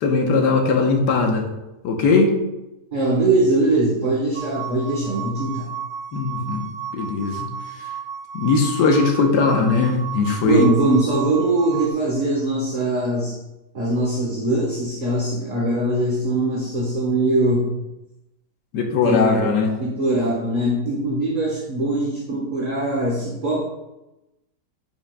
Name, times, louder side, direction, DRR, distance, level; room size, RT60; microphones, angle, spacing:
voice 1, 0.0-1.4 1.8-2.3 6.1-6.6 6.9-7.5 7.8-7.9 8.3-10.7 18.7-19.7, left 4 dB, 85° left, 2 dB, 1.5 m, -19 dB
voice 2, 2.9-5.7 10.4-13.4 13.7-17.7 19.0-19.4 19.8-23.6, right 2 dB, 30° right, -4 dB, 1.1 m, -21 dB
sound 1, 4.3-11.9, right 8 dB, 75° right, 0.6 m, -33 dB
10.5 x 6.1 x 2.2 m, 0.96 s
omnidirectional pair, 1.8 m